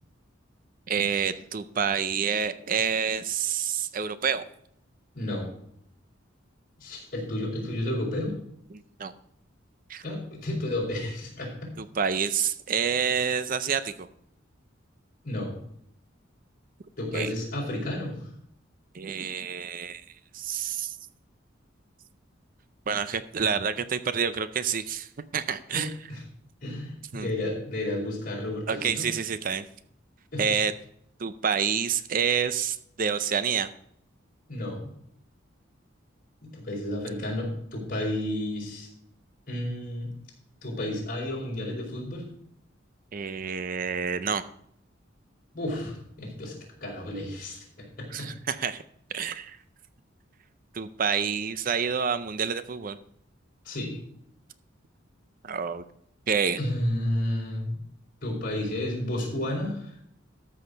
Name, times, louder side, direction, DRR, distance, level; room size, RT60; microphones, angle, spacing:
voice 1, 0.9-4.4 9.0-9.1 9.9-10.0 11.8-14.1 17.1-17.3 18.9-20.0 20.3-21.0 22.9-25.9 27.1-27.3 28.7-29.6 30.4-30.7 31.2-33.7 43.1-44.5 48.1-48.8 49.1-49.6 50.7-53.0 55.4-55.8 56.3-56.6, right 7 dB, 45° right, 13 dB, 0.5 m, -28 dB
voice 2, 5.1-5.5 6.8-8.4 10.0-11.7 15.2-15.6 17.0-18.3 25.7-26.2 26.6-29.1 30.3-30.4 34.5-34.9 36.4-38.9 39.5-40.1 40.6-42.3 45.5-46.5 46.8-47.6 48.0-48.3 53.6-54.0 56.6-57.8 58.2-59.9, left 1 dB, 45° left, -2 dB, 4.4 m, -31 dB
13.0 x 6.4 x 5.2 m, 0.70 s
head